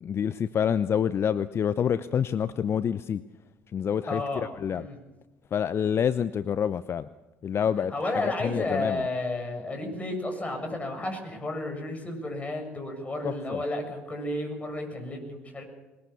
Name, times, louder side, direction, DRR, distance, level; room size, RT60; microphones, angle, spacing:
voice 1, 0.0-3.2 3.7-4.9 5.5-7.1 7.4-9.0 13.2-13.6, left 8 dB, 40° left, 14 dB, 0.7 m, -27 dB
voice 2, 4.1-5.0 7.9-15.6, left 2 dB, 20° left, 4 dB, 7.4 m, -32 dB
21.0 x 20.5 x 7.1 m, 1.1 s
hypercardioid pair, 60°, 6 cm